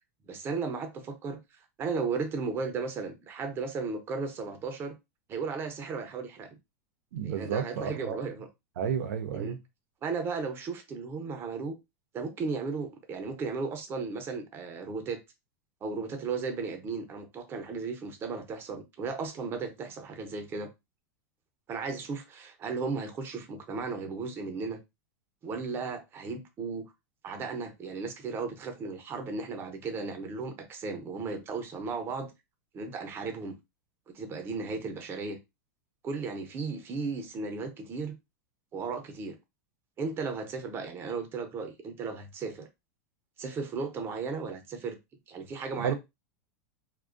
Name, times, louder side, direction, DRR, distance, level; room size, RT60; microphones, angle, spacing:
voice 1, 0.2-1.4 1.8-4.9 5.3-6.5 7.2-8.5 9.3-9.6 10.0-11.8 12.1-15.2 15.8-20.7 21.7-24.8 25.4-26.9 27.2-32.3 32.7-33.6 34.1-35.4 36.0-38.2 38.7-39.4 40.0-42.7 43.4-45.0 45.3-45.9, right 4 dB, 25° right, 0.6 m, -35 dB
voice 2, 7.1-8.2 8.8-9.6 45.8-45.9, right 7 dB, 80° right, 0.5 m, -31 dB
2.4 x 2.1 x 2.4 m
supercardioid pair, 135°, 9 cm